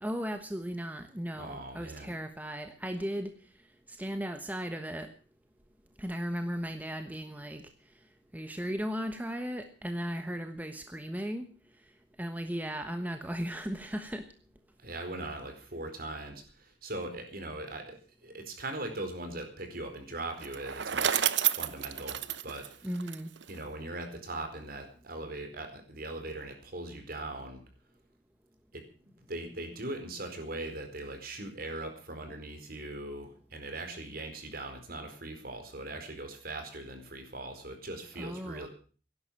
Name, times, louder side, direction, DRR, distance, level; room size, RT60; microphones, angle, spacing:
voice 1, 0.0-3.3 3.9-5.1 6.0-7.6 8.3-11.5 12.2-14.2 22.8-23.3 38.2-38.7, equal, 10° right, 7 dB, 1.2 m, -36 dB
voice 2, 1.3-2.1 14.8-22.9 23.5-27.6 28.7-38.7, right 2 dB, 55° right, 6 dB, 4.5 m, -40 dB
Bicycle, 20.4-23.6, right 10 dB, 80° right, 0.9 m, -30 dB
17.0 x 11.0 x 7.3 m, 0.41 s
head